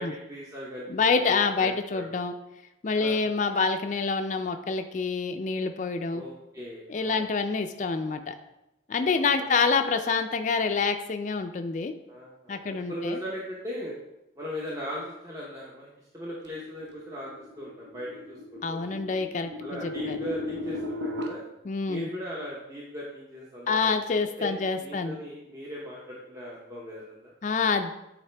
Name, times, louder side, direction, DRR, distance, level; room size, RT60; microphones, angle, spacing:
voice 1, 0.0-2.1 2.9-3.4 6.1-7.2 9.1-9.5 12.1-14.0 14.4-15.9 16.1-18.8 19.6-21.4 21.9-27.3, equal, 20° right, -5 dB, 0.8 m, -39 dB
voice 2, 0.9-2.3 2.8-6.2 6.9-8.3 8.9-11.9 12.5-13.2 18.6-20.2 21.7-22.1 23.7-25.2 27.4-27.9, left 4 dB, 40° left, 7 dB, 0.4 m, -27 dB
sound 1, 16.5-21.3, left 2 dB, 80° right, 0.8 m, -36 dB
8.4 x 4.0 x 3.3 m, 0.92 s
head